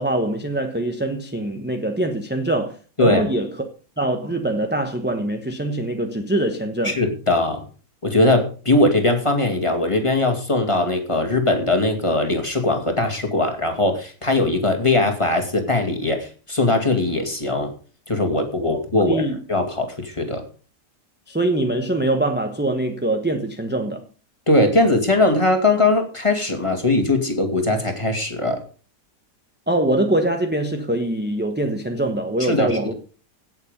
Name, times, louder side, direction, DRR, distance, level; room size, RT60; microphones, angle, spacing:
voice 1, 0.0-3.5 4.0-7.0 18.7-19.4 21.3-24.0 29.7-32.9, right 1 dB, 5° right, 1.0 m, -23 dB
voice 2, 6.8-7.6 8.0-17.7 18.1-19.2 19.5-20.4 24.5-28.6 32.4-32.9, left 2 dB, 20° left, 2.4 m, -20 dB
17.0 x 7.2 x 5.2 m
omnidirectional pair, 1.7 m